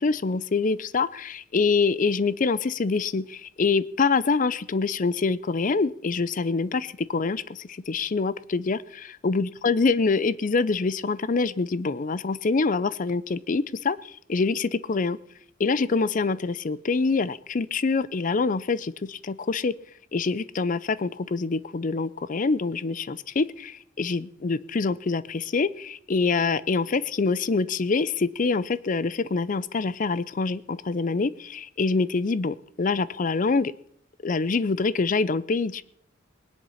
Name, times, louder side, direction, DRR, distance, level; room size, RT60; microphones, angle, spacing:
voice 1, 0.0-15.2 15.6-19.7 20.1-33.7 34.2-35.8, left 4 dB, 40° left, 19 dB, 0.5 m, -25 dB
20.0 x 10.5 x 5.6 m, 0.68 s
head